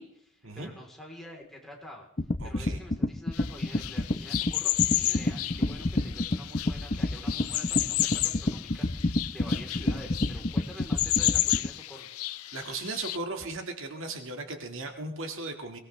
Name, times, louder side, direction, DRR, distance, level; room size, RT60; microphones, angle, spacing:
voice 1, 0.0-2.1 2.4-12.1, equal, ahead, -1 dB, 3.4 m, -47 dB
sound 1, 2.2-11.7, left 1 dB, 35° left, 0.8 m, -29 dB
voice 2, 2.4-2.8 12.5-15.8, right 3 dB, 60° right, 4 dB, 1.9 m, -37 dB
sound 2, 3.3-13.2, left 15 dB, 80° left, 0.6 m, -32 dB
23.5 x 19.0 x 3.3 m, 0.70 s
head